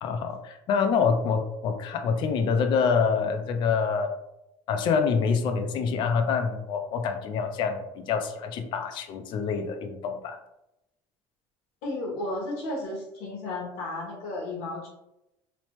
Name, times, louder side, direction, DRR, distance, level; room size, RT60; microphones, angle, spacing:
voice 1, 0.0-4.1 4.7-10.4, left 5 dB, 50° left, 7 dB, 0.4 m, -26 dB
voice 2, 11.8-14.9, left 2 dB, 90° left, -2 dB, 0.9 m, -33 dB
3.0 x 2.0 x 2.9 m, 0.87 s
cardioid pair, 150°, 10 cm